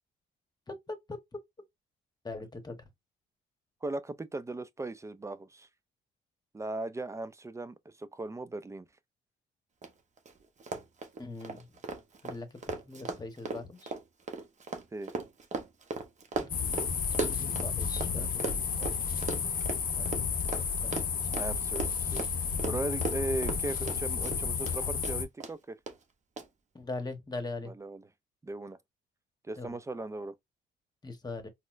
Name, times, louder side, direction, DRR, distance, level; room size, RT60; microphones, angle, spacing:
voice 1, 0.7-1.4 2.2-2.8 11.2-11.7 12.2-12.6 12.8-13.9 16.4-16.5 16.9-18.5 18.8-19.0 19.9-20.1 20.8-21.0 21.3-21.4 26.7-27.7 29.6-29.8 31.0-31.5, left 3 dB, 20° left, 1.0 m, -41 dB
voice 2, 3.8-5.7 6.5-8.9 14.9-15.1 21.4-25.8 27.6-28.1 28.4-28.8 29.5-30.3, right 2 dB, 15° right, 0.3 m, -38 dB
Run, 9.8-9.9 10.2-10.3 10.6-18.1 18.4-24.7 25.0-25.5 25.9-26.0 26.4-26.5, right 4 dB, 35° right, 0.8 m, -37 dB
sound 1, 16.5-25.2, left 6 dB, 45° left, 0.7 m, -32 dB
4.1 x 2.0 x 2.5 m
cardioid pair, 90°, 20 cm